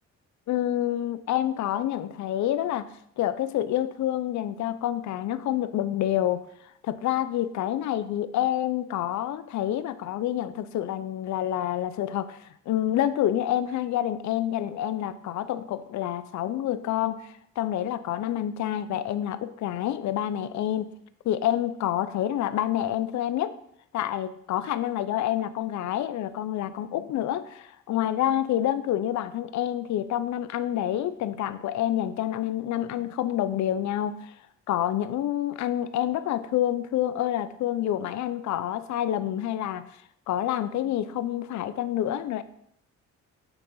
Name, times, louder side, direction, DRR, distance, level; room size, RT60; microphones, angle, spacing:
voice 1, 0.5-2.9 3.2-6.4 6.8-20.9 21.2-23.5 23.9-34.4 34.7-40.0 40.3-42.4, left 12 dB, 70° left, 14 dB, 0.5 m, -28 dB
8.9 x 3.9 x 3.8 m, 0.71 s
cardioid pair, 90°, 30 cm